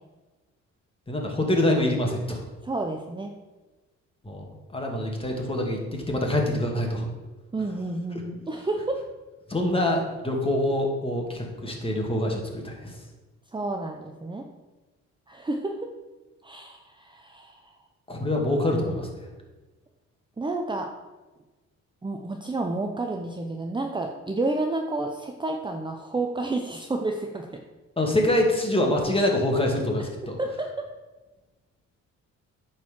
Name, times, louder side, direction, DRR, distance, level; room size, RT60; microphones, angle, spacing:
voice 1, 1.1-2.4 4.2-4.4 4.7-7.1 9.5-12.9 18.1-19.1 28.0-30.4, left 1 dB, 20° left, 1 dB, 2.4 m, -25 dB
voice 2, 2.6-3.3 7.5-9.0 13.5-14.5 15.3-15.8 16.4-17.7 20.4-20.9 22.0-27.6 30.4-30.9, right 2 dB, 15° right, 3 dB, 0.8 m, -30 dB
9.1 x 4.6 x 7.5 m, 1.2 s
cardioid pair, 90°, 30 cm